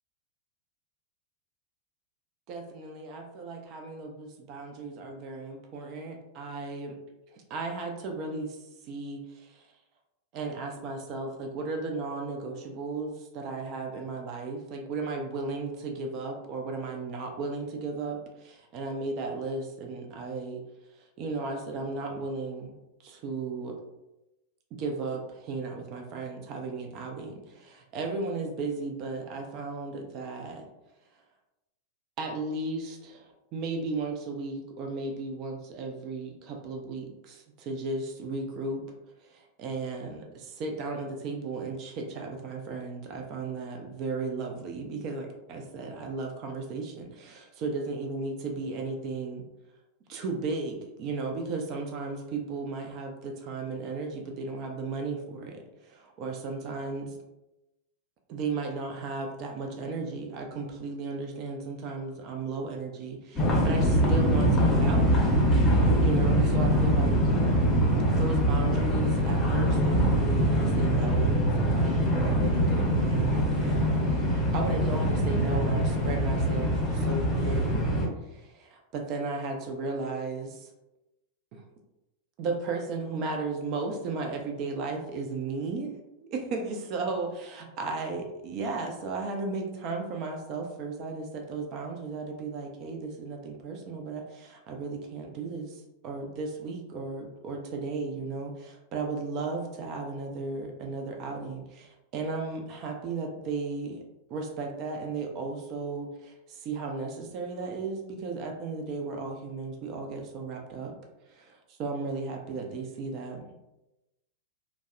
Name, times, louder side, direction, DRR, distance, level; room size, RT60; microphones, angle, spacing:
voice 1, 2.5-7.0 7.3-8.6 8.9-9.6 10.3-20.6 21.2-22.7 23.0-23.8 24.8-30.7 32.2-38.9 39.2-49.4 50.1-57.1 58.3-67.2 68.1-77.8 78.3-80.7 81.5-81.6 82.4-85.9 86.2-104.0 104.3-110.9 111.3-113.5, right 3 dB, 40° right, 3 dB, 0.4 m, -35 dB
sound 1, 63.4-78.1, equal, 20° left, 0.6 m, -24 dB
2.6 x 2.0 x 2.5 m, 0.95 s
figure-of-eight pair, 90°, 0 cm